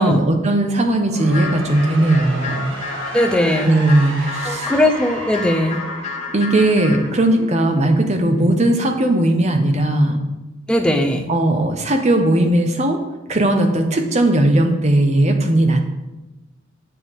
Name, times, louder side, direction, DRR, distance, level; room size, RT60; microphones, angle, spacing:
voice 1, 0.0-2.7 3.6-4.7 6.3-10.2 11.3-13.0 13.3-15.8, right 1 dB, 35° right, 5 dB, 0.9 m, -17 dB
sound 1, 0.9-7.8, right 1 dB, 80° right, 1.8 m, -33 dB
sound 2, 1.3-7.1, left 4 dB, 35° left, 1.4 m, -31 dB
voice 2, 3.1-3.7 4.5-5.8 10.7-11.3, left 1 dB, 5° left, 3 dB, 0.7 m, -18 dB
sound 3, 4.4-9.8, left 1 dB, 55° left, 2.1 m, -40 dB
9.8 x 6.9 x 3.6 m, 1.0 s
head